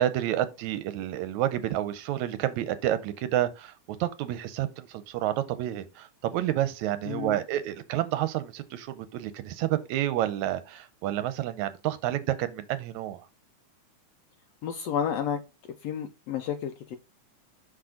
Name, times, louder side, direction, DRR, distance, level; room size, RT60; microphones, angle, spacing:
voice 1, 0.0-13.2, right 13 dB, 80° right, 1.9 m, -29 dB
voice 2, 7.1-7.4 14.6-15.4 15.8-17.0, left 8 dB, 75° left, 1.5 m, -31 dB
6.1 x 5.1 x 3.7 m
omnidirectional pair, 3.5 m